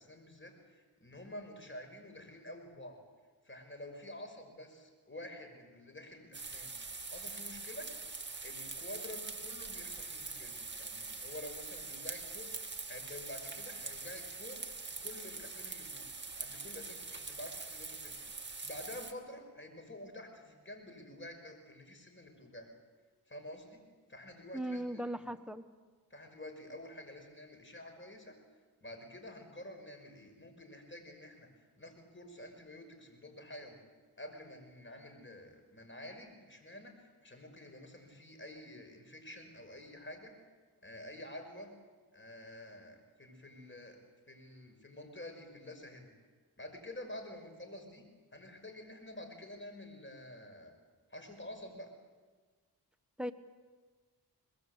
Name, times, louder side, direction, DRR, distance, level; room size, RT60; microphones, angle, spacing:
voice 1, 0.0-3.0 3.4-6.7 7.1-7.9 8.4-16.1 16.4-18.2 18.6-22.7 23.3-23.8 24.1-25.3 26.1-28.4 28.8-33.8 34.2-40.3 40.8-41.8 42.1-44.0 44.3-46.1 46.6-48.1 48.3-50.7 51.1-51.9, left 1 dB, 30° left, 5 dB, 5.8 m, -49 dB
sound 1, 6.3-19.1, right 3 dB, 30° right, 2.4 m, -43 dB
voice 2, 24.5-25.6 53.2-53.3, right 1 dB, ahead, 7 dB, 1.4 m, -38 dB
24.0 x 20.5 x 8.2 m, 1.4 s
cardioid pair, 60°, 39 cm